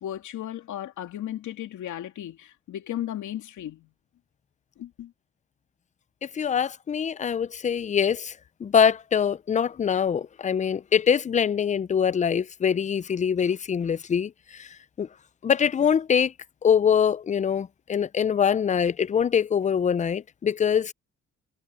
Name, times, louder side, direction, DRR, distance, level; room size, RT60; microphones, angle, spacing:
voice 1, 0.0-3.9 4.8-5.1, left 12 dB, 75° left, 2.9 m, -35 dB
voice 2, 6.4-8.3 8.6-14.3 14.6-14.7 15.0-15.1 15.4-16.3 16.6-20.9, left 7 dB, 25° left, 0.4 m, -23 dB
cardioid pair, 90°, 30 cm